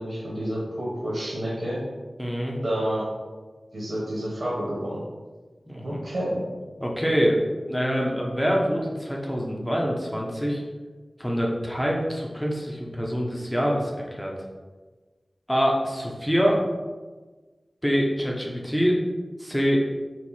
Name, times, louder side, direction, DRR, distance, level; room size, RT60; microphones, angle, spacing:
voice 1, 0.0-1.8 2.6-3.1 3.7-5.0 5.8-6.4, equal, 70° right, -5 dB, 1.3 m, -29 dB
voice 2, 2.2-2.6 5.7-6.0 6.8-7.4 7.7-10.6 11.2-14.3 15.5-16.6 17.8-19.0 19.4-19.8, equal, 5° left, -2 dB, 0.9 m, -25 dB
4.6 x 2.5 x 4.2 m, 1.3 s
cardioid pair, 40°, 0 cm